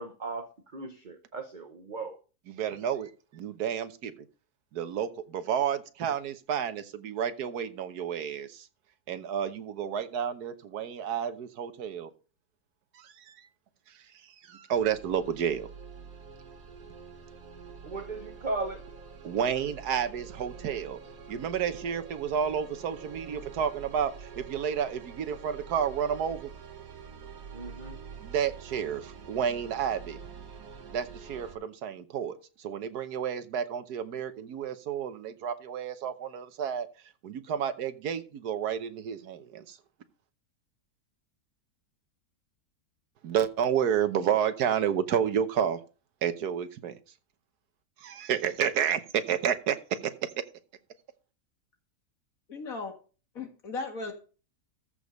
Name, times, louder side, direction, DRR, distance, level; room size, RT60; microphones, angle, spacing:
voice 1, 0.0-2.2 17.8-18.8 27.5-28.0, right 3 dB, 35° right, 6 dB, 1.0 m, -37 dB
voice 2, 2.5-4.1 4.7-8.7 9.1-12.1 12.9-13.5 13.9-15.7 19.2-21.0 21.3-26.5 28.2-30.2 30.9-36.9 37.2-39.8 43.2-45.8 46.2-47.0 48.0-50.3, right 8 dB, 80° right, 11 dB, 1.5 m, -31 dB
sound 1, 14.7-31.5, right 6 dB, 60° right, 1.7 m, -46 dB
voice 3, 52.5-52.9 53.4-54.1, left 3 dB, 60° left, 4 dB, 2.2 m, -36 dB
14.0 x 5.0 x 5.2 m, 0.36 s
omnidirectional pair, 1.7 m